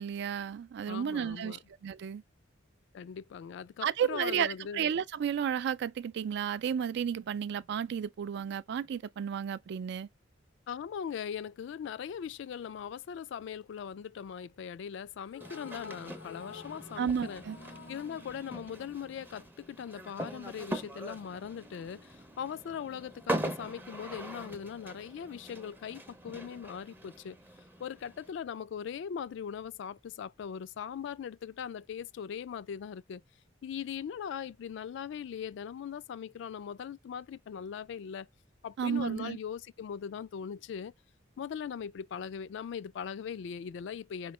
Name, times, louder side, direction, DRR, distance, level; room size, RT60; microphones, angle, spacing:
voice 1, 0.0-2.2 3.8-10.1 17.0-17.6 38.8-39.4, right 8 dB, 60° right, 0.3 m, -32 dB
voice 2, 0.9-1.6 2.9-4.9 10.7-17.4 17.9-27.4 27.8-33.2 33.6-38.3 38.6-40.9 41.4-44.3, left 7 dB, 65° left, 0.3 m, -40 dB
sound 1, 15.2-19.7, left 6 dB, 85° left, 0.9 m, -50 dB
sound 2, 15.4-28.3, right 1 dB, 10° right, 0.5 m, -42 dB
4.2 x 3.2 x 3.0 m
head